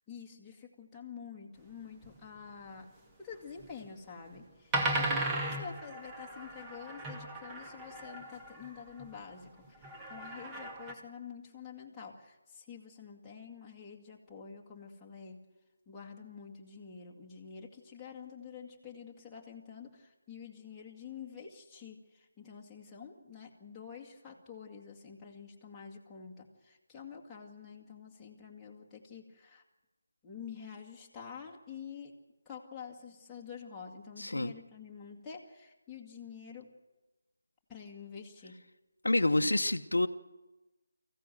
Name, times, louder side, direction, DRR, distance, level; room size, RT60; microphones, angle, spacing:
voice 1, 0.1-2.9 3.2-15.4 15.9-29.6 30.2-32.1 32.5-36.7 37.7-38.6 39.2-39.5, left 6 dB, 10° left, -4 dB, 2.0 m, -48 dB
sound 1, 2.0-2.1 3.6-3.9 4.4-4.5 4.7-9.2 9.8-10.9, right 2 dB, 15° right, 1.6 m, -36 dB
voice 2, 34.2-34.5 39.0-40.1, left 2 dB, 75° left, 6 dB, 0.9 m, -28 dB
24.0 x 15.5 x 7.7 m, 1.1 s
figure-of-eight pair, 160°, 0 cm